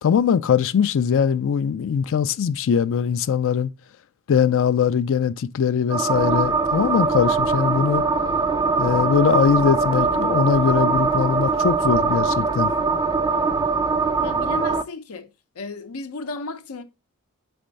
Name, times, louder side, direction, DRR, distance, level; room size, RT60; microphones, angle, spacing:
voice 1, 0.0-3.7 4.3-8.0 8.8-12.7, left 7 dB, 60° left, 0.4 m, -21 dB
sound 1, 5.9-14.8, right 4 dB, 20° right, 0.4 m, -22 dB
voice 2, 14.2-15.3 15.6-16.8, left 3 dB, 80° left, 0.7 m, -34 dB
4.4 x 4.3 x 5.1 m
head